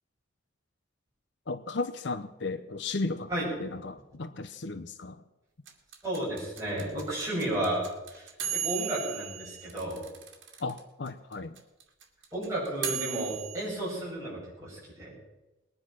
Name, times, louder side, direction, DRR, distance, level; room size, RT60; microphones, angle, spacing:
voice 1, 1.5-3.3 3.6-5.2 10.6-11.5, left 3 dB, 60° left, 11 dB, 0.7 m, -35 dB
sound 1, 5.7-10.8 11.1-11.2 11.3-13.6, right 8 dB, 65° right, 2.4 m, -36 dB
voice 2, 6.0-10.0 12.3-15.1, right 1 dB, 15° right, -6 dB, 7.7 m, -33 dB
20.5 x 10.0 x 6.0 m, 1.0 s
head